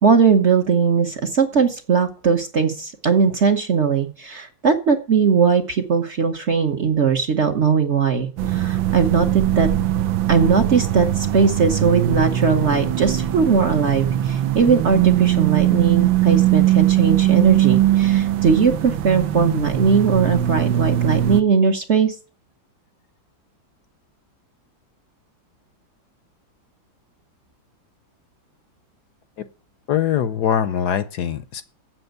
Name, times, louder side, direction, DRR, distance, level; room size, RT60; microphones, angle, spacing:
voice 1, 0.0-9.7 10.3-22.1, right 6 dB, 45° right, 6 dB, 1.0 m, -19 dB
sound 1, 8.4-21.4, right 12 dB, 80° right, 1.6 m, -20 dB
voice 2, 29.9-31.6, left 9 dB, 65° left, 14 dB, 1.1 m, -22 dB
8.0 x 7.6 x 8.0 m, 0.38 s
omnidirectional pair, 2.1 m